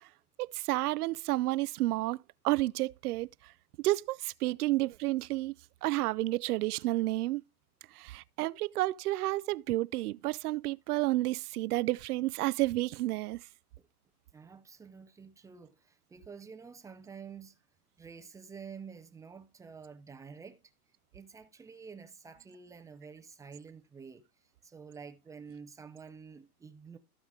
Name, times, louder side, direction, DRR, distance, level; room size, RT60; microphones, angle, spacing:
voice 1, 0.4-2.2 2.4-3.3 3.8-5.5 5.8-7.4 8.0-13.4, right 18 dB, 75° right, 0.5 m, -30 dB
voice 2, 14.3-17.6 18.0-20.6 21.1-27.0, right 5 dB, 10° right, 0.4 m, -49 dB
14.5 x 4.9 x 3.6 m
hypercardioid pair, 125°, 45 cm